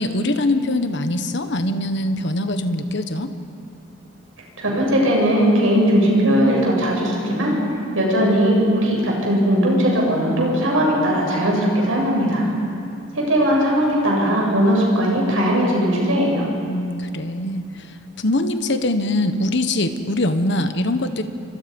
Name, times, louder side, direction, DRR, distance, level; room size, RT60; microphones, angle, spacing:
voice 1, 0.0-3.3 12.6-12.7 16.7-21.2, left 1 dB, 60° left, 8 dB, 1.3 m, -23 dB
voice 2, 4.6-7.6 7.9-12.5 13.1-16.5, equal, 80° right, -2 dB, 7.6 m, -18 dB
29.0 x 25.0 x 5.4 m, 2.6 s
head